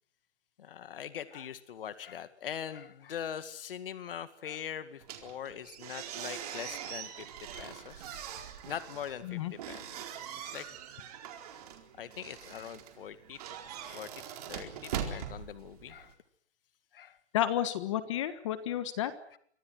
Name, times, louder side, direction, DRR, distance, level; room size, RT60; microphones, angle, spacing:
voice 1, 0.6-8.3 8.7-10.0 10.3-10.7 12.0-13.4 13.9-14.1 14.5-16.2 16.9-17.2 19.3-19.4, left 9 dB, 55° left, 12 dB, 2.1 m, -42 dB
sound 1, 5.0-16.1, right 9 dB, 35° right, 4.3 m, -42 dB
voice 2, 17.3-19.1, left 11 dB, 25° left, 13 dB, 1.5 m, -31 dB
29.5 x 24.5 x 6.3 m, 0.63 s
hypercardioid pair, 175°, 33 cm